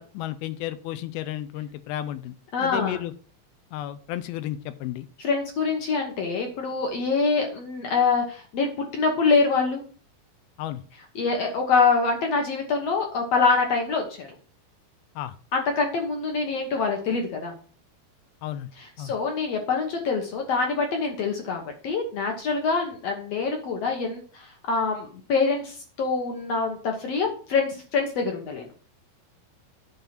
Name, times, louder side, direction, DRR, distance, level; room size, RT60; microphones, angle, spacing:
voice 1, 0.0-3.1 3.7-5.1 10.6-10.8 15.2-15.4 18.4-18.7 19.0-19.1, left 13 dB, 85° left, 13 dB, 2.5 m, -33 dB
voice 2, 2.5-3.0 5.2-9.8 11.1-14.3 15.5-17.5 18.8-28.7, left 4 dB, 70° left, 2 dB, 1.6 m, -25 dB
9.5 x 3.6 x 5.9 m, 0.41 s
omnidirectional pair, 4.4 m